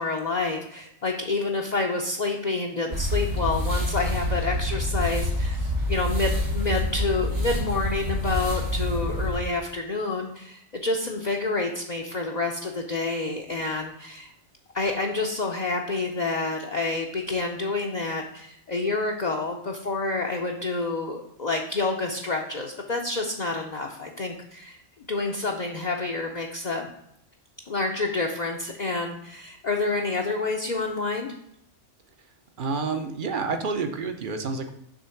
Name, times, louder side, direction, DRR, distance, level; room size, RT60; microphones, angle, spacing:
voice 1, 0.0-14.3 14.7-24.8 25.1-26.9 27.7-31.3, left 3 dB, 45° left, 0 dB, 0.6 m, -28 dB
sound 1, 2.9-9.4, left 1 dB, 75° right, 2.4 m, -27 dB
voice 2, 32.6-34.7, right 4 dB, 50° right, 7 dB, 0.8 m, -29 dB
6.3 x 3.5 x 5.8 m, 0.75 s
omnidirectional pair, 1.2 m